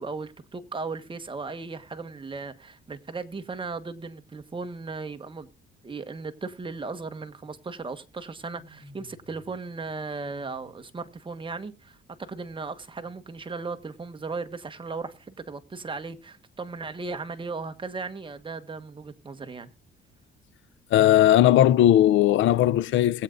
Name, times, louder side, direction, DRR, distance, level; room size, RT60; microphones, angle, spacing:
voice 1, 0.0-5.5 5.8-19.7, right 4 dB, 25° right, 1.4 m, -36 dB
sound 1, 8.4-9.6 9.8-10.9, left 2 dB, ahead, 3.7 m, -53 dB
voice 2, 20.9-23.2, left 12 dB, 75° left, 0.5 m, -18 dB
21.0 x 8.2 x 2.5 m
cardioid pair, 90°, 20 cm